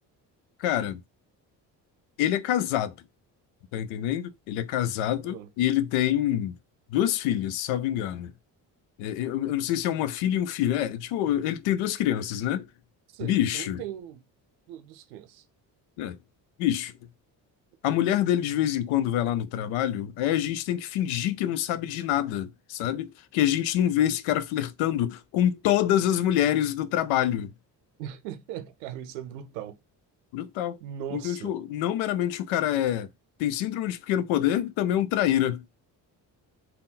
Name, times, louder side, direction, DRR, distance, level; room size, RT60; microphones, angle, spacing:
voice 1, 0.6-1.0 2.2-2.9 3.7-6.6 6.9-8.3 9.0-12.7 13.2-13.8 16.0-16.2 16.6-16.9 17.8-27.5 30.3-30.8 31.1-33.1 33.4-35.6, left 11 dB, 75° left, 0.6 m, -26 dB
voice 2, 13.1-14.2 14.7-15.4 28.0-29.8 30.8-31.6, right 10 dB, 90° right, 0.6 m, -39 dB
3.6 x 2.2 x 4.0 m
hypercardioid pair, 50°, 49 cm